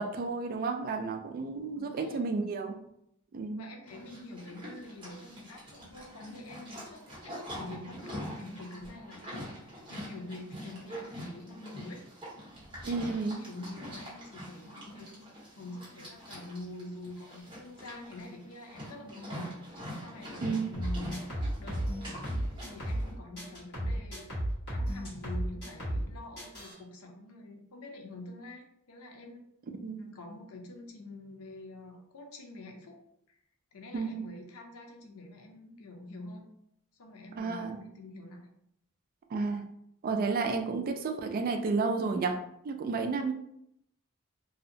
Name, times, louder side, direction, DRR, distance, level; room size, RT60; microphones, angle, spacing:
voice 1, 0.0-2.8 3.3-3.7 12.8-13.4 20.4-20.7 29.8-30.0 33.9-34.2 37.4-37.8 39.3-39.7 40.0-42.4 42.6-43.3, right 4 dB, 40° right, 5 dB, 0.3 m, -31 dB
voice 2, 1.7-2.3 3.6-12.0 12.8-15.2 15.6-21.3 21.6-22.3 22.6-24.3 24.7-29.4 30.0-33.0 33.3-33.4 33.7-36.4 37.0-38.5, left 2 dB, 90° left, 3 dB, 0.5 m, -46 dB
Livestock farm animals working animals, 3.9-23.1, equal, 25° right, 0.9 m, -44 dB
sound 1, 20.7-23.1 23.4-26.1 26.4-26.7, right 1 dB, 50° left, 1.4 m, -34 dB
2.7 x 2.1 x 2.6 m, 0.75 s
head